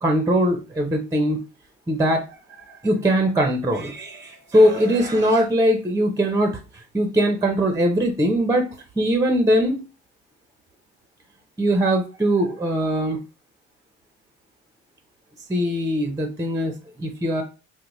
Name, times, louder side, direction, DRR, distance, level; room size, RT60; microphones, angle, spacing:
voice 1, 0.0-1.4 1.9-2.3 2.8-9.8 11.6-13.2 15.5-17.4, equal, 10° right, 5 dB, 0.6 m, -21 dB
4.0 x 2.1 x 3.0 m, 0.31 s
cardioid pair, 90°, 30 cm